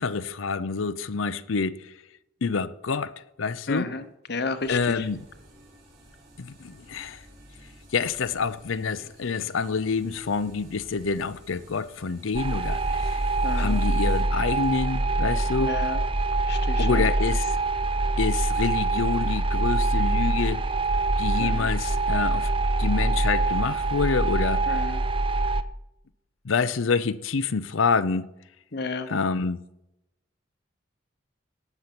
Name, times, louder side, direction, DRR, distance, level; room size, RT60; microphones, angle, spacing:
voice 1, 0.0-1.9 2.4-3.9 4.7-5.3 6.4-7.2 7.9-13.2 13.5-15.8 16.8-17.6 18.2-20.7 21.2-22.5 22.8-24.7 26.4-28.3 29.1-29.6, left 5 dB, 85° left, 0.6 m, -27 dB
voice 2, 3.7-4.0 4.3-5.1 13.4-13.8 15.6-16.0 16.5-17.1 21.4-21.7 24.7-25.0 28.7-29.1, left 3 dB, 55° left, 0.9 m, -31 dB
sound 1, 4.6-14.2, right 1 dB, 50° right, 5.4 m, -52 dB
sound 2, 12.3-25.6, right 2 dB, 25° right, 0.5 m, -24 dB
18.0 x 7.0 x 6.0 m
head